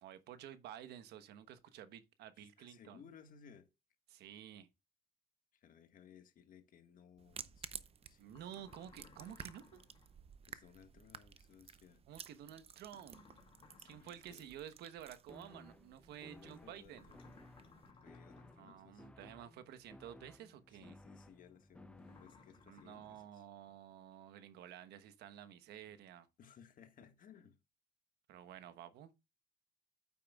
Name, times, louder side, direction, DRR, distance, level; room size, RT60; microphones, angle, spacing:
voice 1, 0.0-3.0 4.1-4.7 8.2-9.8 12.1-13.3 13.8-17.1 18.6-20.9 22.7-26.3 28.3-29.1, right 10 dB, 80° right, 1.0 m, -52 dB
voice 2, 2.4-3.7 5.6-8.3 10.5-12.0 13.8-14.5 16.3-17.2 17.6-19.1 20.8-23.4 26.4-27.6, left 8 dB, 55° left, 1.6 m, -61 dB
sound 1, 7.2-17.9, right 7 dB, 35° right, 0.7 m, -55 dB
sound 2, 8.3-10.1 12.9-14.5 16.9-18.9 22.0-23.2, left 4 dB, 35° left, 2.7 m, -63 dB
sound 3, 15.3-22.7, left 1 dB, 5° left, 0.6 m, -59 dB
9.1 x 8.4 x 2.3 m
cardioid pair, 110°, 17 cm